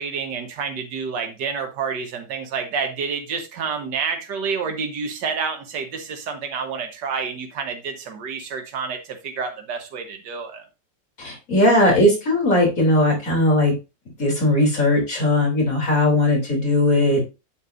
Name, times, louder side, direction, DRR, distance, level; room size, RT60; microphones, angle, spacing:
voice 1, 0.0-10.6, right 5 dB, 80° right, 4 dB, 1.8 m, -29 dB
voice 2, 11.2-13.7 14.2-17.2, left 1 dB, 50° left, 0 dB, 3.6 m, -18 dB
8.4 x 7.9 x 2.6 m, 0.27 s
omnidirectional pair, 1.9 m